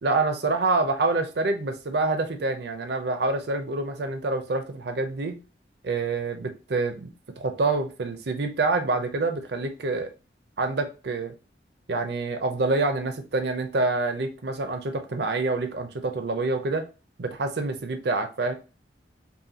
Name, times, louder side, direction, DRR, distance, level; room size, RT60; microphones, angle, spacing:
voice 1, 0.0-5.4 5.8-7.1 7.4-10.1 10.6-11.3 11.9-16.8 17.2-18.5, right 3 dB, 65° right, 0.6 m, -26 dB
5.5 x 2.3 x 2.7 m
head